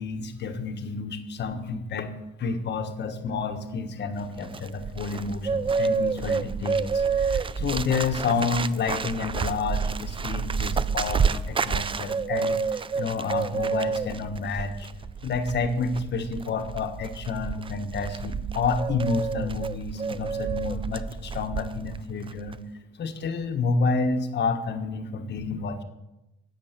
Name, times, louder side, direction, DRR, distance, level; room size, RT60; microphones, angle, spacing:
voice 1, 0.0-2.1 2.4-14.9 15.2-22.6 23.0-25.8, left 4 dB, 60° left, 8 dB, 1.4 m, -29 dB
Bird, 4.2-22.0 22.3-22.6, right 5 dB, 25° right, 0.5 m, -29 dB
10.5 x 8.7 x 6.8 m, 0.95 s
cardioid pair, 90°, 20 cm